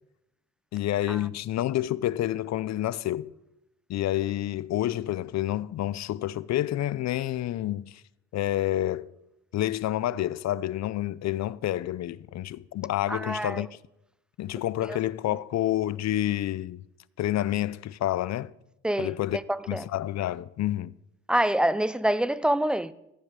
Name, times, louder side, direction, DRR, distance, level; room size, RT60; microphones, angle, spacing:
voice 1, 0.7-3.3 3.9-8.0 8.3-9.1 9.5-13.7 14.4-16.8 17.2-18.5 19.0-19.4 19.7-20.9, left 13 dB, 60° left, 0.5 m, -28 dB
voice 2, 13.1-13.6 14.9-15.0 18.8-19.2 19.5-19.9 21.3-22.9, right 1 dB, 5° right, 0.5 m, -26 dB
14.5 x 5.0 x 8.8 m
cardioid pair, 90°, 30 cm